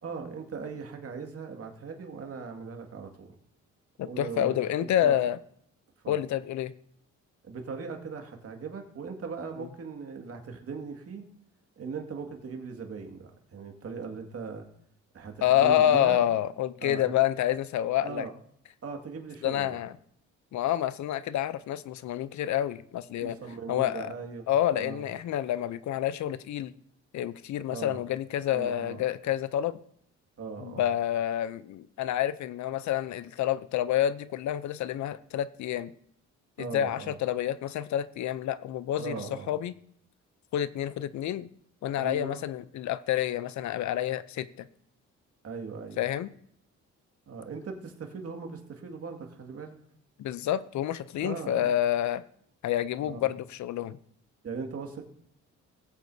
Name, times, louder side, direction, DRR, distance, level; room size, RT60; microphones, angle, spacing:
voice 1, 0.0-3.3 4.1-5.2 6.0-6.2 7.4-11.2 11.8-14.7 15.1-16.2 16.8-17.1 18.0-18.3 18.8-19.8 23.2-25.1 27.7-28.0 28.5-29.0 30.4-30.9 36.6-37.2 39.0-39.5 42.0-42.4 45.4-46.0 47.3-49.8 51.2-51.7 53.1-53.2 54.4-55.0, right 5 dB, 50° right, 3 dB, 2.1 m, -39 dB
voice 2, 4.0-5.4 6.1-6.7 15.4-18.3 19.4-19.9 20.5-23.4 23.7-24.1 24.5-26.7 27.1-29.8 30.6-35.9 36.6-39.7 40.5-41.5 41.8-44.7 46.0-46.3 50.2-52.2 52.6-54.0, left 11 dB, 70° left, 16 dB, 0.6 m, -28 dB
19.0 x 8.0 x 2.8 m, 0.67 s
cardioid pair, 90°, 30 cm